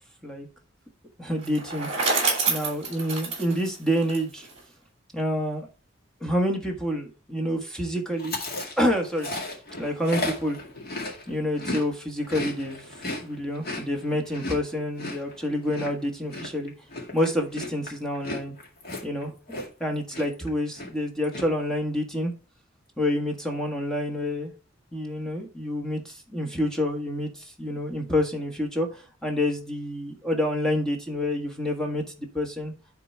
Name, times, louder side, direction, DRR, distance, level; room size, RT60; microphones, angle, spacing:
voice 1, 1.2-1.9 2.5-4.5 5.1-5.7 6.2-8.4 8.8-9.3 9.8-10.6 11.3-12.9 13.2-16.7 17.1-18.5 19.0-19.3 19.8-22.3 23.0-24.5 24.9-32.7, left 1 dB, 5° left, 2 dB, 1.4 m, -28 dB
Bicycle, 1.4-4.6, right 4 dB, 35° right, 3.0 m, -28 dB
Chewing mastication, 8.2-11.9 12.1-19.9 20.1-20.5 20.7-21.4, left 2 dB, 50° left, 2.1 m, -35 dB
10.0 x 3.9 x 4.5 m, 0.36 s
head